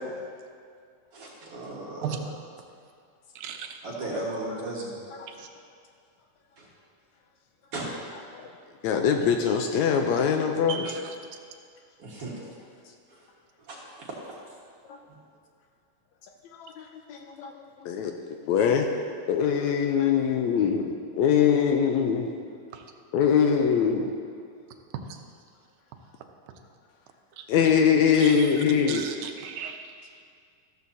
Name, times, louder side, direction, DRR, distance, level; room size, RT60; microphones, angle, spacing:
voice 1, 1.1-2.1 3.8-4.9 6.6-6.7 7.7-7.9 12.0-12.4 13.1-13.2 13.7-14.1 15.1-15.2, right 2 dB, 50° right, -4 dB, 2.3 m, -35 dB
voice 2, 3.4-3.8 5.4-5.5 10.7-11.4 22.7-22.8 25.1-25.2 27.4-27.5 28.2-30.2, right 7 dB, 75° right, 5 dB, 2.2 m, -37 dB
voice 3, 8.8-10.9 14.9-15.0 16.6-18.9 19.3-22.3 23.1-24.1 27.5-29.1, left 7 dB, 80° left, 4 dB, 1.8 m, -23 dB
14.0 x 13.5 x 2.8 m, 2.2 s
omnidirectional pair, 3.7 m